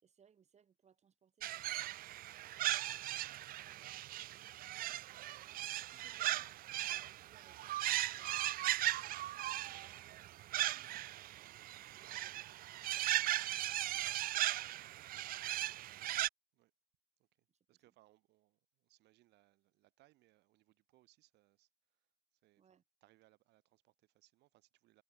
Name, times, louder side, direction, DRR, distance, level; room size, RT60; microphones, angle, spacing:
voice 1, 0.0-3.6 5.8-11.0 11.8-13.6 14.3-15.7 17.5-17.9 22.6-22.8, right 7 dB, 40° right, 4.5 m, -72 dB
sound 1, 1.4-16.3, right 15 dB, 60° right, 0.4 m, -38 dB
voice 2, 17.2-25.0, right 18 dB, 85° right, 6.0 m, -71 dB
cardioid pair, 110°, 17 cm